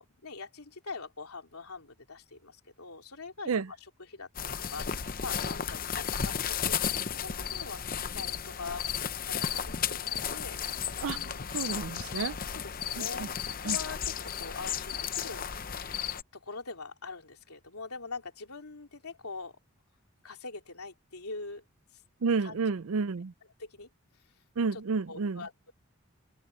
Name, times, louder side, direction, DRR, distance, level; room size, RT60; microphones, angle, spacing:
voice 1, 0.0-8.9 9.2-11.5 12.5-15.8 16.3-19.6 20.2-21.6 21.9-22.0 22.4-22.6 23.6-23.9 24.7-24.8 25.1-25.7, left 4 dB, 85° left, 3.3 m, -44 dB
sound 1, 4.4-16.2, left 8 dB, 40° left, 0.7 m, -34 dB
voice 2, 11.5-12.4 13.0-13.3 13.6-13.8 22.2-23.3 24.6-25.4, right 4 dB, 75° right, 0.5 m, -30 dB
head